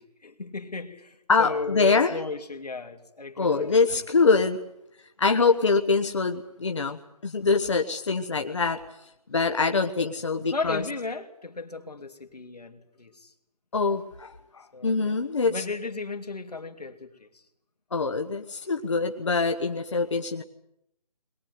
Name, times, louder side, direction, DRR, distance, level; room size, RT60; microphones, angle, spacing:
voice 1, 0.0-4.0 10.4-13.3 14.7-15.1 15.4-17.4, left 3 dB, 90° left, 6 dB, 3.0 m, -35 dB
voice 2, 1.3-2.1 3.4-4.6 5.2-8.8 9.3-10.8 13.7-15.6 17.9-20.4, left 4 dB, 50° left, 4 dB, 1.3 m, -24 dB
21.5 x 19.5 x 9.6 m, 0.80 s
figure-of-eight pair, 175°, 20 cm